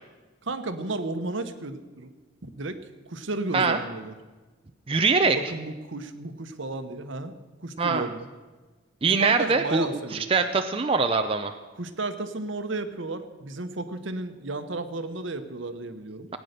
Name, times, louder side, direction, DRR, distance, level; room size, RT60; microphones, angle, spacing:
voice 1, 0.4-2.1 2.4-4.1 5.3-7.3 7.6-8.3 9.0-10.2 11.7-16.3, right 2 dB, 65° right, 9 dB, 1.0 m, -33 dB
voice 2, 4.9-5.4 7.8-8.1 9.0-11.5, right 4 dB, 25° right, 6 dB, 0.5 m, -23 dB
18.0 x 9.3 x 6.7 m, 1.3 s
head